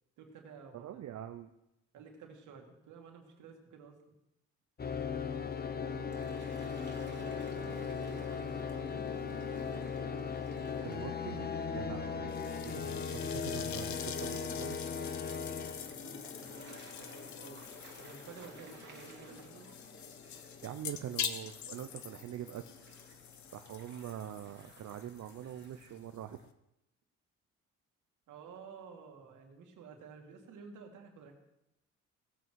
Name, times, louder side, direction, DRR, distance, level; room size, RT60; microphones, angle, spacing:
voice 1, 0.2-1.2 1.9-4.1 7.0-9.2 11.9-12.4 15.9-17.6 18.0-19.7 28.3-31.3, right 5 dB, 80° right, 2 dB, 2.4 m, -52 dB
voice 2, 0.7-1.5 10.8-12.4 12.6-14.8 20.6-22.6 23.5-26.5, right 11 dB, 65° right, 7 dB, 0.7 m, -44 dB
sound 1, 4.8-23.0, left 6 dB, 30° left, 1.0 m, -39 dB
Gull seagull / Waves surf, 6.1-26.0, right 3 dB, 35° right, 2.8 m, -60 dB
sound 2, 12.3-26.5, left 9 dB, 70° left, 1.0 m, -45 dB
18.0 x 7.9 x 4.7 m, 0.86 s
cardioid pair, 90°, 30 cm